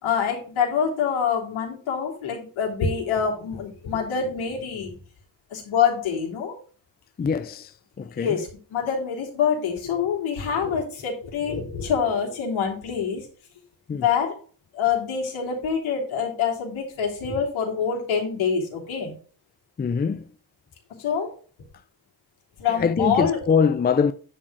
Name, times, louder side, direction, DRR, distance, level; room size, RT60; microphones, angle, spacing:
voice 1, 0.0-4.9 5.5-6.6 8.1-13.3 13.9-14.4 14.7-19.1 21.0-21.3 22.6-23.4, left 7 dB, 80° left, 3.3 m, -25 dB
voice 2, 7.2-7.7 8.0-8.4 13.9-14.0 19.8-20.2 22.8-24.1, left 6 dB, 20° left, 0.5 m, -23 dB
10.0 x 3.9 x 6.0 m
cardioid pair, 85°, 47 cm